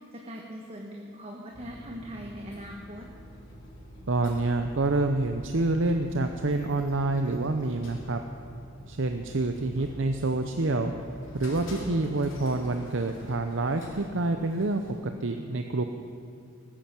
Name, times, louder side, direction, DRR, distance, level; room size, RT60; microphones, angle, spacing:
voice 1, 0.1-3.1, equal, 30° right, 0 dB, 1.3 m, -41 dB
sound 1, 1.5-14.9, left 1 dB, 65° left, 3.8 m, -46 dB
voice 2, 4.1-8.2 8.9-10.9 11.3-15.9, right 2 dB, 65° right, 6 dB, 0.7 m, -27 dB
19.0 x 10.0 x 7.5 m, 2.6 s
head